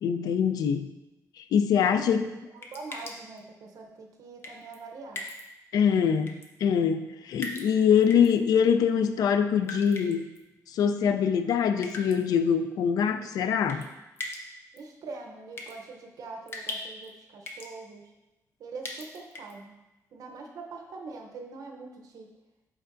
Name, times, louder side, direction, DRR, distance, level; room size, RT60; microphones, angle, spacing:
voice 1, 0.0-0.9 1.4-2.3 5.7-10.3 10.7-13.8, left 7 dB, 85° left, 9 dB, 0.4 m, -24 dB
voice 2, 1.8-2.1 2.5-5.3 14.7-18.1 18.6-19.8 20.1-22.3, right 3 dB, 65° right, 2 dB, 0.7 m, -43 dB
sound 1, 2.6-3.4 4.4-4.8 5.1-5.4 6.3-6.5 7.4-8.3 9.6-10.4 11.8-12.2 13.7-13.9 14.2-14.4 14.8-14.9 15.6-15.7 16.5-17.1 17.4-17.7 18.8-19.5, left 2 dB, 40° left, 0.7 m, -38 dB
7.9 x 4.6 x 2.5 m, 1.0 s
wide cardioid pair, 180°, 6 cm